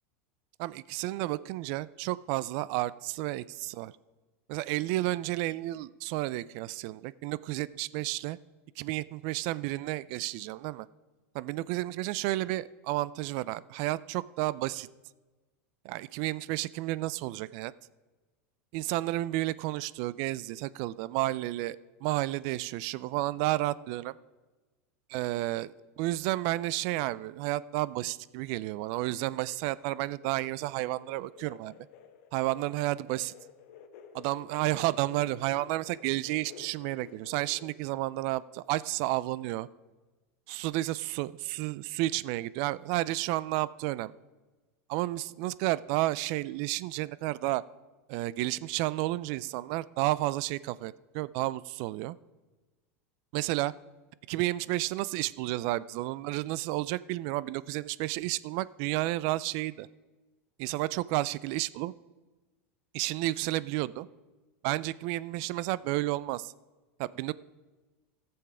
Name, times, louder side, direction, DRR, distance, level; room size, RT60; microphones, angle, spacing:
voice 1, 0.6-3.9 4.5-8.4 8.8-10.9 11.4-14.9 15.8-17.7 18.7-24.1 25.1-31.7 32.3-33.3 34.1-39.7 40.5-44.1 44.9-47.6 48.1-52.2 53.3-53.7 54.3-59.9 60.6-61.9 62.9-64.1 64.6-66.5 67.0-67.3, right 17 dB, 60° right, 20 dB, 0.4 m, -31 dB
sound 1, 28.9-37.7, left 8 dB, 65° left, 1.1 m, -53 dB
15.0 x 7.1 x 4.9 m, 1.2 s
supercardioid pair, 115°, 8 cm